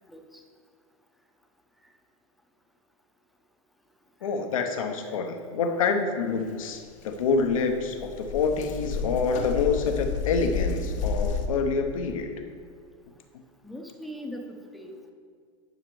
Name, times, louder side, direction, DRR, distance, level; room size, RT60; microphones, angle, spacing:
voice 1, 0.1-0.4 4.2-4.3 5.0-5.2 13.6-15.1, equal, ahead, 2 dB, 1.0 m, -41 dB
voice 2, 4.2-12.4, left 4 dB, 80° left, 6 dB, 0.8 m, -27 dB
sound 1, 7.0-7.1 7.3-11.5, left 5 dB, 45° left, 0.8 m, -31 dB
10.5 x 5.8 x 3.1 m, 2.1 s
hypercardioid pair, 95°, 17 cm